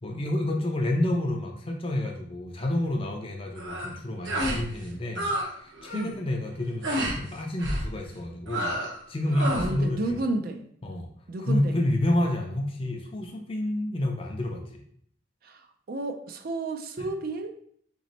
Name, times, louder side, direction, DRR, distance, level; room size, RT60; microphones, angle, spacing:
voice 1, 0.0-5.3 5.6-10.2 10.8-11.1 11.4-14.8 17.0-17.1, left 1 dB, 30° left, 2 dB, 0.5 m, -29 dB
sound 1, 3.6-3.9 4.2-4.6 4.9-5.5 5.8-6.1 6.8-7.2 7.6-7.9 8.5-9.0 9.3-9.7, equal, 70° right, 1.1 m, -29 dB
voice 2, 9.6-10.6 11.3-11.7 15.4-17.5, right 2 dB, 50° right, 6 dB, 0.4 m, -31 dB
4.1 x 3.1 x 3.9 m, 0.62 s
head